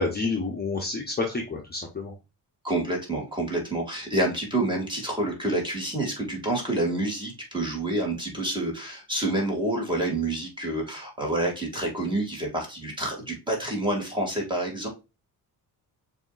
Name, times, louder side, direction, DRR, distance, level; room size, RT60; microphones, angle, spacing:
voice 1, 0.0-2.1, left 3 dB, 25° left, 0 dB, 1.0 m, -29 dB
voice 2, 2.6-14.9, right 1 dB, 10° right, -1 dB, 2.3 m, -28 dB
7.0 x 2.8 x 2.5 m, 0.27 s
cardioid pair, 100°, 39 cm